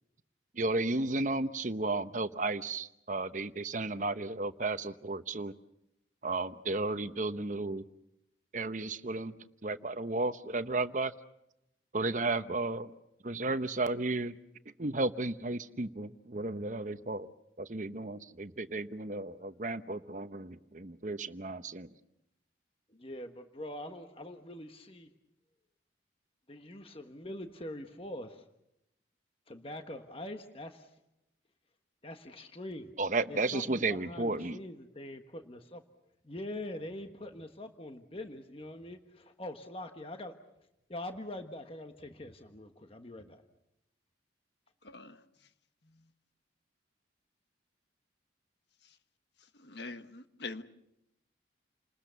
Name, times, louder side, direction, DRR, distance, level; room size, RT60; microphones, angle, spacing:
voice 1, 0.5-5.5 6.2-7.8 8.5-9.3 9.6-11.1 11.9-12.9 13.2-14.4 14.8-17.3 17.6-21.9 33.0-34.6, right 2 dB, 40° right, 11 dB, 0.9 m, -33 dB
voice 2, 22.9-25.1 26.5-28.4 29.5-30.9 32.0-32.9 33.3-35.8 36.2-40.3 40.9-43.4, left 1 dB, 30° left, 6 dB, 1.3 m, -43 dB
voice 3, 44.8-45.2 49.6-50.6, left 3 dB, 65° left, 9 dB, 1.4 m, -43 dB
30.0 x 20.0 x 6.9 m, 0.85 s
head